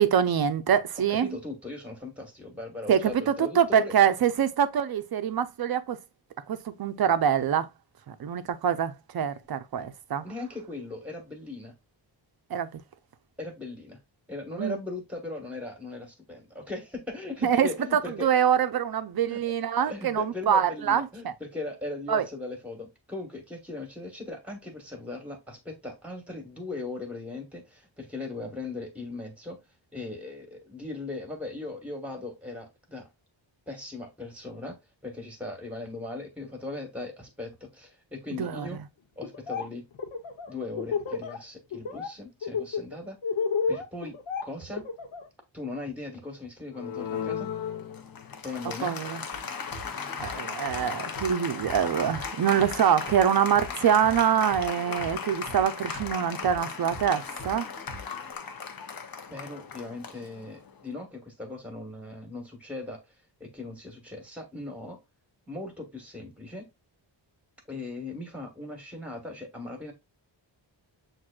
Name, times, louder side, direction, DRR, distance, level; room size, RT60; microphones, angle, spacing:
voice 1, 0.0-1.4 2.9-6.0 6.5-7.7 8.1-10.2 12.5-12.8 14.6-14.8 17.4-21.3 22.1-22.3 38.4-38.7 48.8-49.2 50.2-57.7, right 8 dB, 50° right, 0.5 m, -25 dB
voice 2, 1.1-3.9 10.2-11.7 13.4-14.0 14.3-18.3 19.3-19.5 19.8-29.6 29.9-33.1 33.7-38.8 39.2-39.9 40.5-43.2 43.7-44.8 45.5-47.5 48.4-49.0 59.3-63.0 63.4-65.0 65.5-66.7 67.7-69.9, left 2 dB, 5° right, 1.2 m, -38 dB
Laughter, 39.2-39.6 39.9-41.4 41.7-42.1 42.4-45.3, left 5 dB, 80° left, 0.9 m, -30 dB
Applause, 46.7-60.8, left 6 dB, 50° left, 0.6 m, -37 dB
sound 1, 49.3-58.3, left 1 dB, 15° left, 0.8 m, -45 dB
7.4 x 2.6 x 2.3 m
wide cardioid pair, 175°, 47 cm